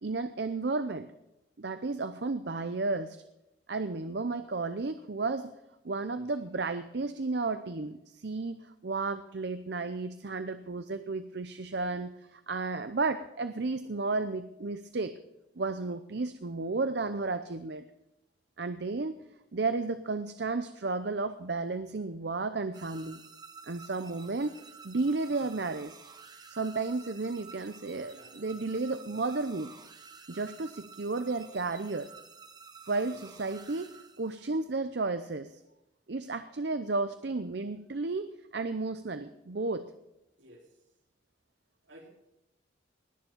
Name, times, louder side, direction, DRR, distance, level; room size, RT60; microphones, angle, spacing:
voice 1, 0.0-1.1 1.6-3.2 3.7-5.5 5.8-15.1 15.6-17.8 18.6-19.2 19.5-23.2 23.7-24.6 24.8-25.9 26.5-29.7 30.3-32.1 32.9-33.9 34.2-35.5 36.1-39.8, right 3 dB, 60° right, 11 dB, 0.7 m, -33 dB
sound 1, 22.7-34.6, right 5 dB, 20° right, 1.0 m, -51 dB
voice 2, 40.4-40.7 41.8-42.1, equal, 75° right, 0 dB, 3.5 m, -53 dB
19.5 x 7.0 x 7.2 m, 0.87 s
head